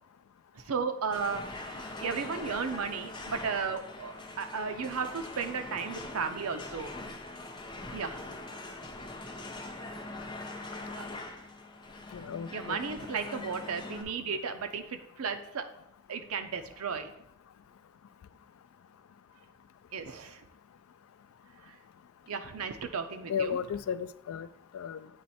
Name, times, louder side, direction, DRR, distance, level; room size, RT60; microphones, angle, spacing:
voice 1, 0.6-6.9 7.9-8.3 11.0-11.1 12.5-15.7 16.1-17.1 19.9-20.4 21.6-21.8 22.3-23.6, right 5 dB, 90° right, 7 dB, 0.6 m, -35 dB
sound 1, 1.1-14.0, left 2 dB, 20° left, 0.7 m, -42 dB
voice 2, 12.1-12.8 23.3-24.5 24.7-25.1, left 7 dB, 80° left, 13 dB, 0.3 m, -34 dB
8.3 x 3.1 x 4.2 m, 0.77 s
head